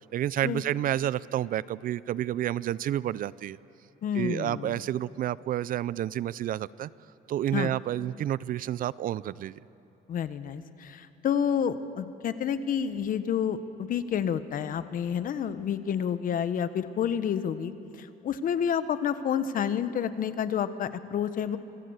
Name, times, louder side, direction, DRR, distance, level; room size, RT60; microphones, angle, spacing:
voice 1, 0.1-3.6 4.1-6.9 7.3-9.6, right 12 dB, 55° right, 20 dB, 0.5 m, -30 dB
voice 2, 4.0-4.8 7.5-7.7 10.1-17.7 18.0-21.6, left 8 dB, 55° left, 12 dB, 1.2 m, -29 dB
26.0 x 19.5 x 8.1 m, 2.9 s
cardioid pair, 110°, 17 cm